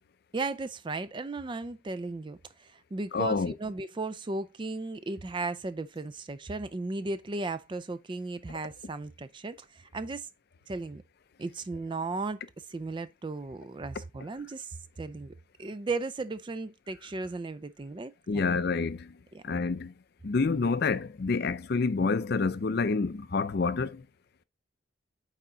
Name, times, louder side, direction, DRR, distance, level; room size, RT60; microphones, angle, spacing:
voice 1, 0.3-10.3 10.7-11.0 11.4-12.4 12.7-18.5 19.3-19.4, right 3 dB, 25° right, 0.3 m, -36 dB
voice 2, 3.1-3.5 18.3-19.1 19.4-19.9 20.2-24.0, left 4 dB, 50° left, 0.5 m, -28 dB
9.0 x 3.7 x 3.9 m
head